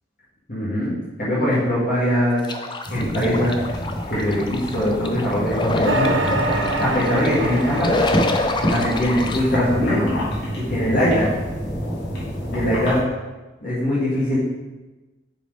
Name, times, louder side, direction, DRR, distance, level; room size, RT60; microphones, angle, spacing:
voice 1, 0.5-0.9 1.2-2.4 2.9-3.6 4.1-6.2 6.8-8.0 8.7-10.1 10.6-11.3 12.5-13.1 13.6-14.4, equal, 45° left, -9 dB, 2.0 m, -21 dB
sound 1, 2.4-9.4, left 2 dB, 25° left, 0.4 m, -27 dB
sound 2, 2.9-13.0, equal, 65° left, 2.4 m, -28 dB
sound 3, 5.8-10.3, right 2 dB, 90° right, 0.8 m, -27 dB
7.4 x 4.6 x 4.9 m, 1.1 s
head